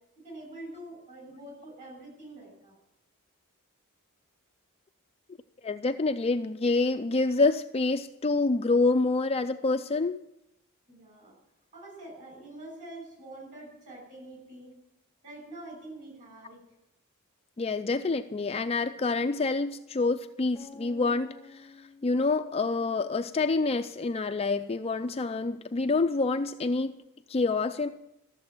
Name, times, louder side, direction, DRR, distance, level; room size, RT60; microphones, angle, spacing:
voice 1, 0.1-2.8 10.9-11.4 11.7-14.7 15.2-16.6, right 1 dB, 35° right, 1 dB, 6.6 m, -45 dB
voice 2, 5.6-10.2 17.6-21.7 22.0-26.9 27.3-27.9, left 3 dB, 25° left, 7 dB, 0.4 m, -27 dB
sound 1, 20.6-24.5, left 2 dB, ahead, 1.1 m, -53 dB
13.5 x 7.5 x 9.5 m, 0.83 s
head